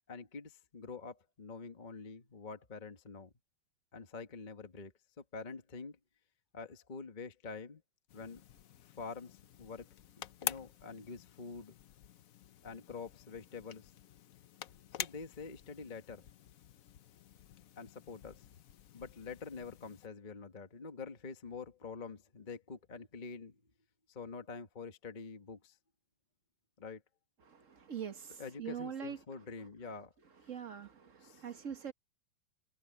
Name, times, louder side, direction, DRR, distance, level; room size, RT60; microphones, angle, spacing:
voice 1, 0.1-3.3 3.9-6.0 6.5-7.8 8.1-8.4 8.8-9.9 10.4-11.8 12.6-13.9 14.9-16.3 17.8-18.5 18.9-23.6 24.1-25.8 26.8-27.0 28.4-30.1 31.2-31.4, left 4 dB, 25° left, 1.3 m, -46 dB
sound 1, 8.1-20.1, left 10 dB, 85° left, 0.7 m, -48 dB
voice 2, 27.5-29.2 30.5-31.9, right 8 dB, 40° right, 1.4 m, -43 dB
omnidirectional pair, 2.4 m